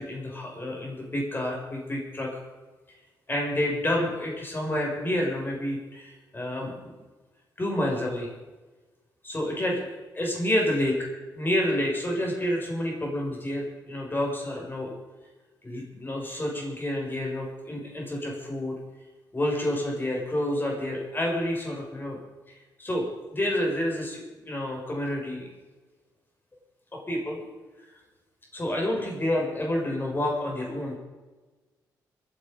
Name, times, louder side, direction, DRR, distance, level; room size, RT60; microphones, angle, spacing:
voice 1, 0.0-2.3 3.3-7.0 7.6-8.3 9.2-10.9 11.3-14.9 15.6-18.7 19.3-22.2 22.5-23.0 23.3-25.5 26.9-27.5 27.8-27.9 28.5-31.0, left 1 dB, 25° left, -1 dB, 6.5 m, -29 dB
24.0 x 9.2 x 5.4 m, 1.2 s
supercardioid pair, 60°, 8 cm